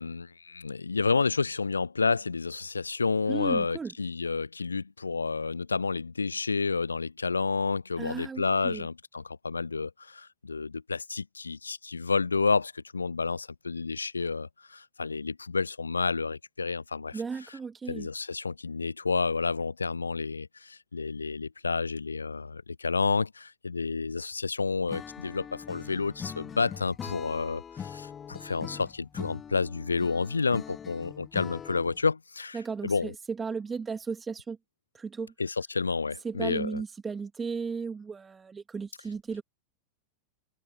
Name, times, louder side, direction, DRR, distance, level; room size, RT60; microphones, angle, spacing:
voice 1, 0.0-17.2 17.9-33.1 35.4-36.8, left 4 dB, 75° left, 1.0 m, -30 dB
voice 2, 3.3-3.9 8.0-8.9 17.1-18.1 32.5-34.6 34.9-35.3 36.2-39.4, right 5 dB, 15° right, 2.2 m, -35 dB
Acoustic guitar / Strum, 24.9-32.1, left 7 dB, 20° left, 2.0 m, -42 dB
figure-of-eight pair, 90°, 0 cm